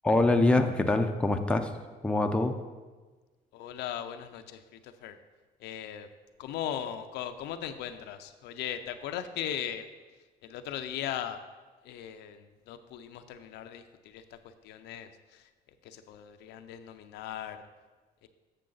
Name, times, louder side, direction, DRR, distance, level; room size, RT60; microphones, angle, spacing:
voice 1, 0.0-1.7 2.0-2.5, left 2 dB, 5° left, 5 dB, 0.5 m, -24 dB
voice 2, 3.5-5.2 5.6-6.1 6.4-9.9 10.4-11.4 11.8-14.4 14.6-15.4 15.8-17.6 18.2-18.3, left 10 dB, 85° left, 9 dB, 0.5 m, -38 dB
7.6 x 6.5 x 3.9 m, 1.3 s
cardioid pair, 110°, 17 cm